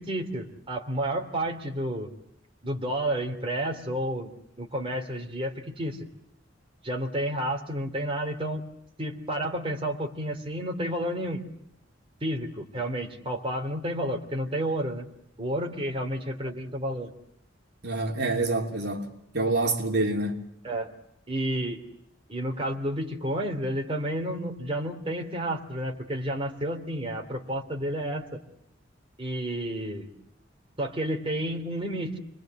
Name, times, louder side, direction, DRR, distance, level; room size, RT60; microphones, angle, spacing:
voice 1, 0.0-2.1 2.6-4.3 4.6-6.1 6.8-8.6 9.0-11.4 12.2-15.1 15.4-17.1 20.6-20.9 21.3-21.8 22.3-28.4 29.2-30.1 30.8-32.2, right 1 dB, 30° right, 3.2 m, -31 dB
voice 2, 17.8-20.4, right 2 dB, 55° right, 3.1 m, -27 dB
30.0 x 22.0 x 7.9 m
head